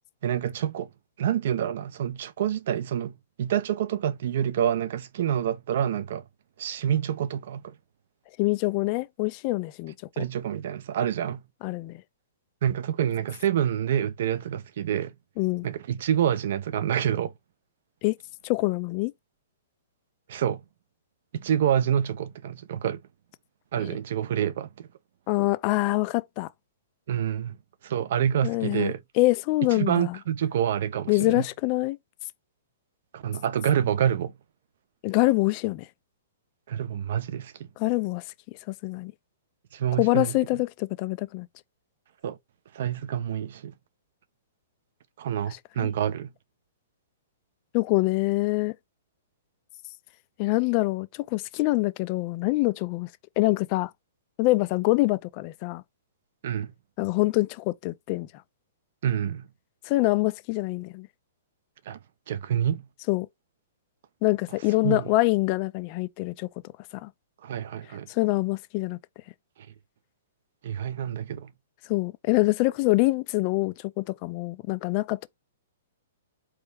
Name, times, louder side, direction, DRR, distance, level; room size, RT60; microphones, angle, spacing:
voice 1, 0.2-0.9 1.2-6.3 6.6-7.8 10.2-11.5 12.6-15.1 15.6-17.3 20.3-20.6 21.3-23.0 23.7-24.9 27.1-27.6 27.8-29.0 29.7-31.5 33.1-34.3 36.7-37.7 39.7-40.4 42.2-42.4 42.7-43.7 45.2-46.3 56.4-56.7 59.0-59.5 61.9-62.0 62.3-62.8 64.8-65.1 67.4-68.1 70.6-71.5, right 9 dB, 50° right, 0.6 m, -27 dB
voice 2, 8.4-9.9 11.6-12.0 15.4-15.7 18.0-18.2 18.4-19.1 23.8-24.0 25.3-26.5 28.4-30.2 31.1-32.0 35.0-35.9 37.8-39.1 40.0-41.5 45.8-45.9 47.7-48.7 50.4-53.1 53.4-53.9 54.4-55.8 57.0-58.3 59.9-61.1 63.1-63.3 64.2-66.5 67.0-67.1 68.1-69.0 71.9-75.3, left 22 dB, 30° left, 0.4 m, -25 dB
4.4 x 3.1 x 3.4 m
hypercardioid pair, 170°, 0 cm